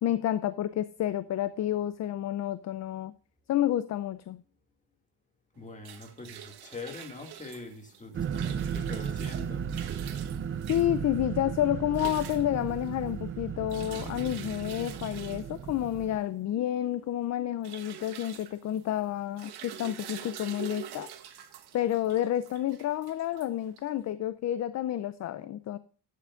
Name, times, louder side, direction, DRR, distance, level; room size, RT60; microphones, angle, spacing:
voice 1, 0.0-3.1 3.5-4.4 10.7-21.1 21.7-25.8, left 12 dB, 45° left, 14 dB, 0.5 m, -30 dB
voice 2, 5.5-9.7, left 3 dB, 20° left, 3 dB, 2.3 m, -43 dB
sound 1, 5.6-24.1, right 10 dB, 70° right, 1.3 m, -46 dB
sound 2, 8.1-16.2, right 8 dB, 30° right, 0.5 m, -35 dB
12.0 x 9.3 x 2.5 m, 0.42 s
cardioid pair, 140°, 40 cm